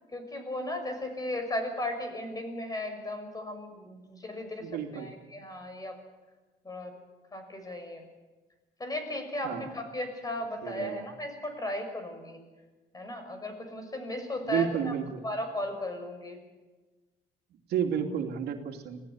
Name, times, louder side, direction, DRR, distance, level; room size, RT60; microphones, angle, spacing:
voice 1, 0.1-6.0 6.6-7.0 7.3-8.0 8.8-12.4 12.9-14.9 15.2-16.4, left 1 dB, 20° left, 6 dB, 6.4 m, -36 dB
voice 2, 4.6-5.2 9.4-9.7 10.6-11.0 14.5-15.2 17.7-19.0, right 8 dB, 75° right, 4 dB, 2.7 m, -31 dB
26.0 x 17.5 x 8.6 m, 1.2 s
cardioid pair, 110°, 17 cm